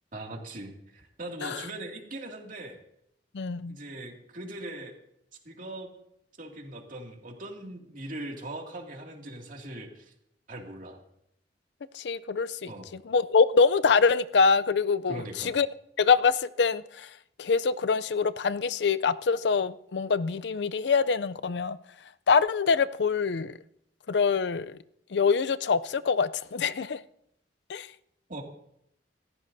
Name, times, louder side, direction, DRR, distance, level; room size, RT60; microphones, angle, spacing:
voice 1, 0.1-2.8 3.7-4.9 5.4-5.9 6.4-10.1 10.5-11.0 12.7-12.9 15.1-15.5 28.3-28.4, right 1 dB, 50° right, 2.4 m, -40 dB
voice 2, 3.3-3.7 11.9-12.7 13.1-15.7 16.0-17.1 17.4-21.8 22.3-23.6 24.1-24.8 25.1-27.0 27.7-27.9, left 5 dB, 75° left, 0.5 m, -25 dB
27.5 x 14.0 x 2.7 m
head